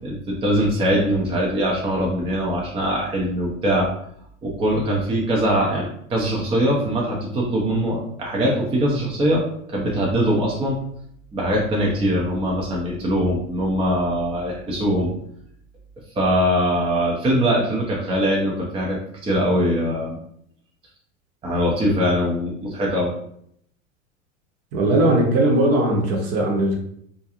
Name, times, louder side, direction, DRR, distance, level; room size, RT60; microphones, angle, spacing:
voice 1, 0.0-3.9 4.4-9.4 9.7-10.8 11.3-15.1 16.2-20.2 21.4-23.1, equal, 15° right, -3 dB, 0.5 m, -22 dB
voice 2, 24.7-26.8, right 1 dB, 40° right, 0 dB, 0.9 m, -19 dB
2.4 x 2.2 x 2.8 m, 0.70 s
hypercardioid pair, 90°, 39 cm